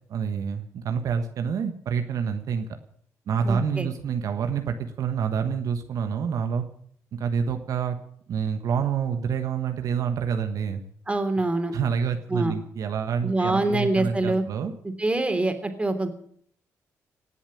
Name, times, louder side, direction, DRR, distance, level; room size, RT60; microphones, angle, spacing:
voice 1, 0.1-2.8 3.3-6.6 7.1-8.0 8.3-10.8 11.7-14.7, right 6 dB, 70° right, 7 dB, 1.4 m, -27 dB
voice 2, 3.4-3.9 11.1-11.8 12.3-12.6 13.2-14.4 15.0-16.1, right 2 dB, 20° right, 7 dB, 3.3 m, -25 dB
18.5 x 7.3 x 9.9 m, 0.63 s
supercardioid pair, 65°, 6 cm